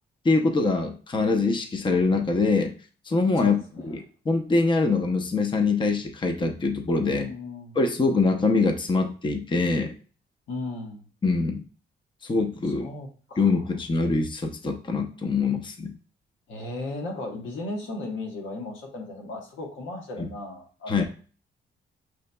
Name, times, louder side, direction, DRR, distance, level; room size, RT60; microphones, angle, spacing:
voice 1, 0.2-2.7 3.1-7.3 7.8-9.9 11.2-11.6 12.2-12.9 13.4-15.9 20.2-20.3 20.9-21.0, left 3 dB, 25° left, 5 dB, 0.6 m, -24 dB
voice 2, 3.4-3.9 7.1-7.8 10.5-11.0 12.6-13.5 16.5-21.0, left 2 dB, 85° left, 2 dB, 1.1 m, -36 dB
6.2 x 2.8 x 2.2 m, 0.40 s
cardioid pair, 90°, 20 cm